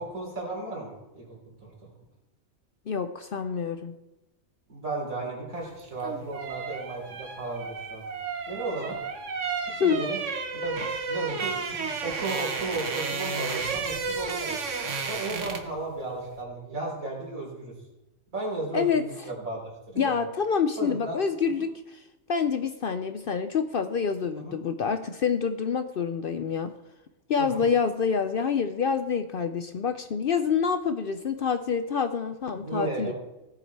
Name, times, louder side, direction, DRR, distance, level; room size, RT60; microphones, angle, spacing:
voice 1, 0.0-1.9 4.7-8.0 8.5-9.0 9.7-10.2 10.5-14.6 15.0-17.7 18.3-20.2 20.8-21.2 24.4-24.6 27.4-27.6 32.5-33.1, right 2 dB, 85° right, -4 dB, 4.0 m, -35 dB
voice 2, 2.9-4.0 9.8-10.0 18.7-19.1 20.0-22.0 22.3-26.7 27.3-33.1, left 6 dB, 60° left, 10 dB, 0.6 m, -27 dB
sound 1, 5.8-15.8 16.1-16.3, right 5 dB, 65° right, 1.4 m, -32 dB
17.0 x 7.3 x 4.6 m, 1.0 s
omnidirectional pair, 1.4 m